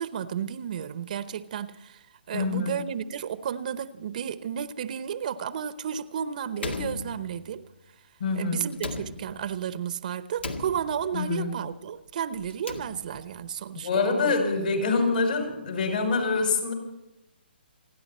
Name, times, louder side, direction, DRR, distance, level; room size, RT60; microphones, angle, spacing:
voice 1, 0.0-7.7 8.4-14.3, right 8 dB, 45° right, 0.9 m, -33 dB
voice 2, 2.3-2.8 8.2-8.6 11.1-11.5 13.7-16.7, left 4 dB, 60° left, 5.9 m, -26 dB
Slam, 6.6-7.7 8.7-9.7 10.4-11.3 12.4-13.4, left 2 dB, 85° left, 2.0 m, -37 dB
28.5 x 11.0 x 4.3 m
hypercardioid pair, 145°, 6 cm